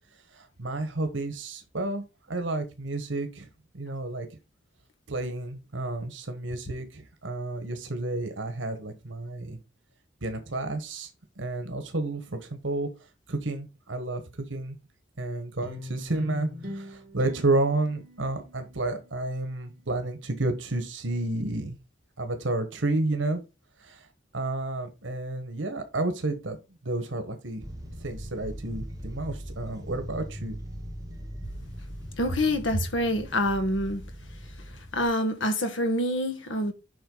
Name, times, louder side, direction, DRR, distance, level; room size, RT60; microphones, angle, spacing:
voice 1, 0.3-3.5 3.7-4.3 5.1-9.6 10.2-11.1 11.4-12.9 13.3-14.2 14.5-14.8 15.2-21.8 22.2-23.4 23.8-24.0 24.3-26.6 26.8-27.6 28.0-30.6, right 2 dB, 85° right, 1.4 m, -31 dB
sound 1, 15.6-20.3, left 1 dB, 55° right, 2.7 m, -41 dB
sound 2, 27.6-35.1, equal, 20° right, 1.8 m, -40 dB
voice 2, 32.2-34.0 34.9-36.7, left 1 dB, 80° left, 1.6 m, -26 dB
7.8 x 5.2 x 4.0 m
head